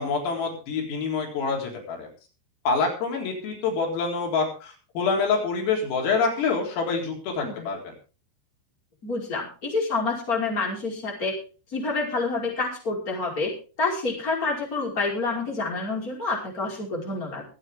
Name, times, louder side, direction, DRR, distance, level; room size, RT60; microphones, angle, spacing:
voice 1, 0.0-2.1 2.7-7.8, left 4 dB, 90° left, 0 dB, 6.6 m, -26 dB
voice 2, 9.0-11.4 11.7-13.5 13.8-17.4, left 3 dB, 15° left, -1 dB, 5.1 m, -28 dB
24.5 x 9.0 x 3.7 m, 0.36 s
omnidirectional pair, 5.8 m